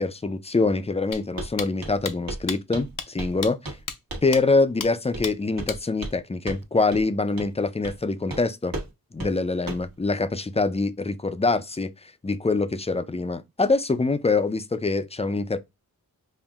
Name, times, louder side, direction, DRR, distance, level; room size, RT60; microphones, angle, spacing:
voice 1, 0.0-3.6 4.2-8.7 9.1-11.9 12.2-15.6, left 3 dB, 20° left, 0.4 m, -24 dB
sound 1, 1.1-1.2 1.6-1.7 2.0-2.1 2.5-2.6 3.0-3.1 3.4-3.5 3.9-4.0 4.3-4.4 4.8-4.9 5.2-5.3 5.7-5.8, left 6 dB, 65° left, 0.6 m, -32 dB
Walk footsteps, 1.4-1.5 1.8-2.0 2.3-2.5 2.7-3.4 3.6-3.8 4.1-4.4 5.1-5.3 5.6-6.2 6.5-6.6 6.9-7.0 7.4-7.5 7.8-8.0 8.3-8.4 8.7-8.9 9.2-9.3 9.7-9.9, right 1 dB, 70° right, 1.2 m, -34 dB
5.5 x 2.5 x 2.4 m
wide cardioid pair, 60°, 35 cm